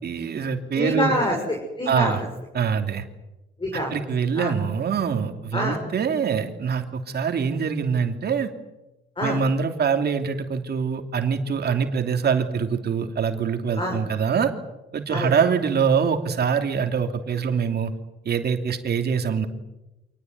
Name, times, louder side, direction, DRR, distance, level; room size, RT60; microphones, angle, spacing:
voice 1, 0.0-1.1 1.9-2.2 2.5-3.0 3.9-8.5 9.2-14.5 14.9-17.9 18.2-19.5, right 6 dB, 55° right, 6 dB, 3.0 m, -24 dB
voice 2, 0.8-2.2 3.6-3.9 4.4-4.5 5.5-5.8 9.2-9.4 13.8-14.0 15.1-15.3, left 1 dB, 25° left, 0 dB, 6.7 m, -26 dB
26.5 x 19.0 x 9.6 m, 1.0 s
cardioid pair, 90°, 20 cm